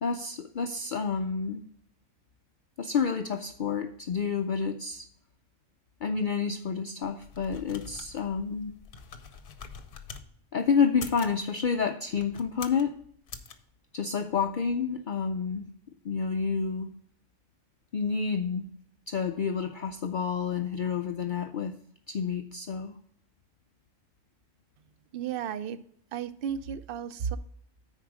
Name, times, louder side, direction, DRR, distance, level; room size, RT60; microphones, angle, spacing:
voice 1, 0.0-1.6 2.8-5.1 6.0-8.8 10.5-12.9 13.9-15.7 16.0-16.9 17.9-18.6 19.1-21.8 22.1-23.0, left 6 dB, 80° left, 7 dB, 0.4 m, -29 dB
sound 1, 7.0-10.3 10.9-11.4 12.1-12.9 13.3-13.5, left 5 dB, 50° left, 0.8 m, -45 dB
voice 2, 25.1-25.8 26.1-27.4, right 8 dB, 65° right, 15 dB, 0.5 m, -33 dB
9.8 x 4.6 x 4.8 m, 0.65 s
omnidirectional pair, 1.4 m